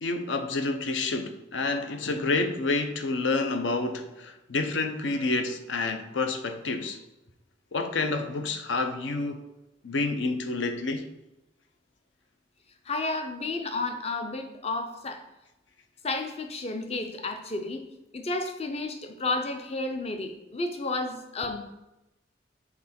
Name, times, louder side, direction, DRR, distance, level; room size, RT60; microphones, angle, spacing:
voice 1, 0.0-7.0 7.7-9.4 9.8-11.0, left 3 dB, 75° left, 0.6 m, -29 dB
voice 2, 12.9-15.2 16.0-17.8 18.1-21.6, left 2 dB, 35° left, 0.6 m, -32 dB
5.9 x 3.7 x 4.3 m
head